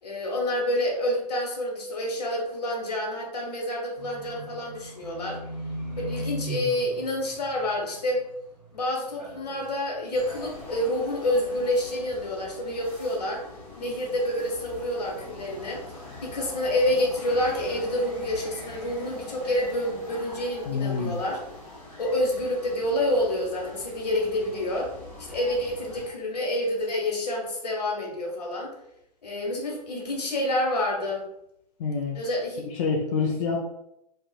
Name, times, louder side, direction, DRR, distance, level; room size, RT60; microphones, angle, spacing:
voice 1, 0.0-5.4 6.0-8.2 8.7-13.4 13.8-15.8 16.2-21.4 22.0-24.9 25.3-28.7 29.2-31.2 32.1-32.6, left 1 dB, 70° left, -1 dB, 1.0 m, -28 dB
Livestock farm animals working animals, 3.9-8.7 9.0-9.7 10.1-10.3, right 1 dB, 30° right, 1.4 m, -38 dB
sound 1, 10.1-26.1, left 2 dB, 10° left, 1.0 m, -43 dB
voice 2, 20.7-21.2 31.8-32.2 32.7-33.6, left 5 dB, 50° left, -1 dB, 0.4 m, -27 dB
2.8 x 2.4 x 2.2 m, 0.80 s
figure-of-eight pair, 110°, 21 cm